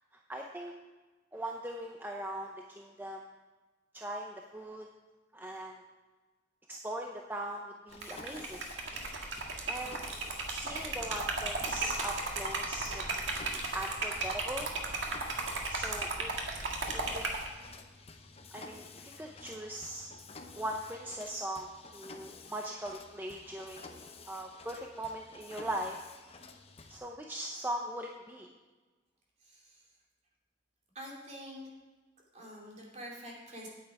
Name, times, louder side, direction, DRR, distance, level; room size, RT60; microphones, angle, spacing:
voice 1, 0.1-0.7 1.3-3.2 3.9-4.9 5.3-5.8 6.7-8.6 9.7-10.0 10.5-14.7 15.7-16.7 16.9-17.3 18.5-20.1 20.6-26.1 26.9-28.5, right 1 dB, 10° right, 1 dB, 0.6 m, -40 dB
Mechanisms, 7.9-27.0, left 4 dB, 30° left, 0.8 m, -51 dB
Liquid, 7.9-17.5, right 3 dB, 75° right, 1.7 m, -35 dB
voice 2, 29.4-29.9 30.9-31.7 32.3-33.7, equal, 35° right, -3 dB, 2.7 m, -46 dB
9.3 x 8.9 x 4.8 m, 1.3 s
head